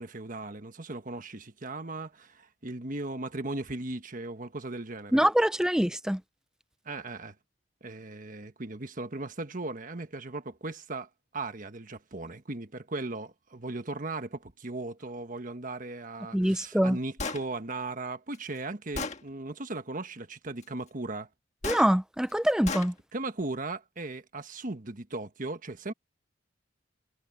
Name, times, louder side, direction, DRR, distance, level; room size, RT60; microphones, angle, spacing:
voice 1, 0.0-5.2 6.8-7.3 7.8-21.3 23.1-25.9, right 2 dB, 45° right, 1.4 m, -37 dB
voice 2, 5.1-6.2 16.3-17.0 21.6-22.9, equal, 5° right, 0.5 m, -24 dB
Gunshot gunfire, 17.2-17.4 18.3-18.4 19.0-19.2 21.6-21.9 22.7-22.9, left 4 dB, 35° left, 1.6 m, -33 dB
head